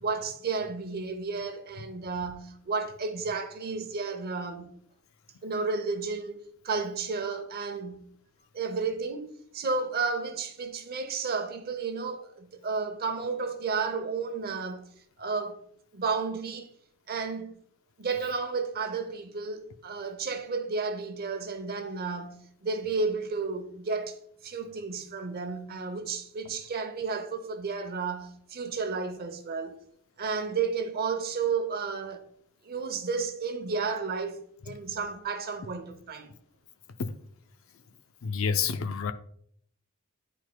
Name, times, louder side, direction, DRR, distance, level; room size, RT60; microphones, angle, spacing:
voice 1, 0.0-4.7 5.4-8.1 8.5-14.9 15.2-15.6 15.9-16.7 17.1-17.5 18.0-29.8 30.2-32.2 32.6-36.3, right 4 dB, 45° right, 0.8 m, -32 dB
voice 2, 38.2-39.1, left 6 dB, 65° left, 0.5 m, -29 dB
10.5 x 4.5 x 2.2 m
head